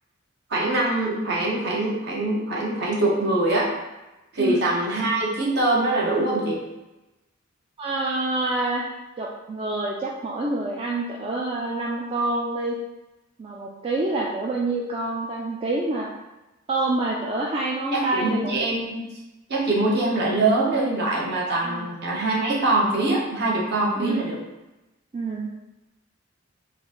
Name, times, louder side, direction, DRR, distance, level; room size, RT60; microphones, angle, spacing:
voice 1, 0.5-3.7 4.3-6.6 17.9-19.0 19.5-24.4, right 2 dB, 55° right, -3 dB, 0.9 m, -23 dB
voice 2, 7.8-8.8 9.2-12.8 13.4-16.1 16.7-18.5 19.9-20.1 21.6-21.9 24.0-24.3 25.1-25.5, right 2 dB, 30° right, -3 dB, 0.3 m, -27 dB
3.9 x 2.6 x 3.8 m, 1.0 s
head